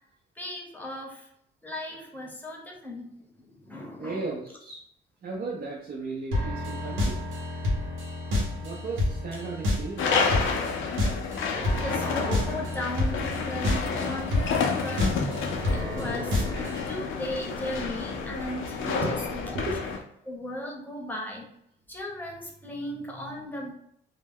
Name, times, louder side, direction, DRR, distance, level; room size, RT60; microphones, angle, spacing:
voice 1, 0.4-1.3 1.6-3.1 3.4-4.2 11.5-15.1 15.7-19.6 20.2-21.5 21.9-23.7, left 1 dB, 10° left, -1 dB, 0.8 m, -36 dB
voice 2, 4.0-4.8 5.2-7.2 8.6-10.3 19.0-19.2 19.5-19.8, right 3 dB, 45° right, -4 dB, 0.5 m, -35 dB
sound 1, 6.3-17.0, left 2 dB, 85° right, 0.9 m, -29 dB
sound 2, 10.0-20.0, left 5 dB, 75° left, 0.5 m, -30 dB
2.1 x 2.1 x 3.5 m, 0.73 s
cardioid pair, 90°, 20 cm